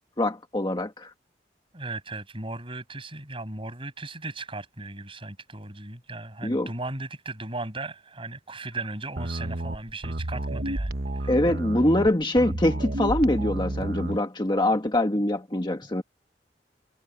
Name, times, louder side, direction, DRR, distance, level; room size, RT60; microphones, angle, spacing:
voice 1, 0.2-1.1 6.4-6.7 11.3-16.0, left 1 dB, 25° left, 1.6 m, -24 dB
voice 2, 1.7-11.3, right 2 dB, 30° right, 6.8 m, -37 dB
sound 1, 9.2-14.2, right 1 dB, 60° right, 1.1 m, -31 dB
head